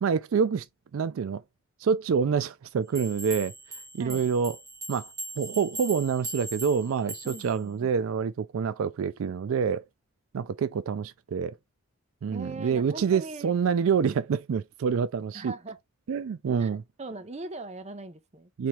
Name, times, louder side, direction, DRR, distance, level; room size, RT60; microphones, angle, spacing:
voice 1, 0.0-0.6 0.9-1.4 1.8-3.5 3.9-4.6 4.9-9.8 10.3-11.6 12.2-15.5 16.1-16.8 18.6-18.7, right 6 dB, 75° right, 0.4 m, -27 dB
sound 1, 2.9-7.6, right 1 dB, 15° right, 1.6 m, -40 dB
voice 2, 7.2-7.9 12.3-13.5 15.3-15.8 16.6-18.5, right 2 dB, 30° right, 0.6 m, -40 dB
4.3 x 3.4 x 3.0 m
head